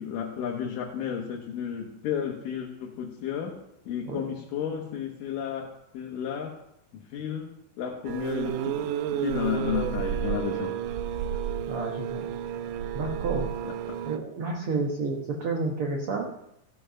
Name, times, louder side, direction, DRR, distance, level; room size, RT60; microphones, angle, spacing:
voice 1, 0.0-3.6 3.9-6.6 6.9-8.9 9.1-10.7 13.6-14.0, left 8 dB, 75° left, 0 dB, 2.7 m, -33 dB
sound 1, 8.0-14.2, right 9 dB, 80° right, 2.0 m, -31 dB
voice 2, 11.7-12.2 12.9-13.4 14.0-16.3, right 3 dB, 60° right, 0 dB, 1.4 m, -30 dB
15.5 x 5.5 x 5.6 m, 0.83 s
omnidirectional pair, 4.0 m